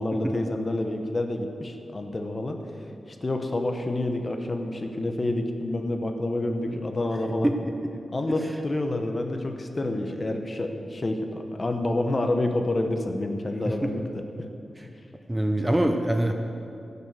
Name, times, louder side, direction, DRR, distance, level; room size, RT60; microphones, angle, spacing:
voice 1, 0.0-2.6 3.1-7.5 8.1-14.5, left 2 dB, 30° left, 5 dB, 0.9 m, -28 dB
voice 2, 15.3-16.3, right 1 dB, 10° right, 4 dB, 0.7 m, -24 dB
15.0 x 6.9 x 6.6 m, 2.6 s
wide cardioid pair, 145°, 0 cm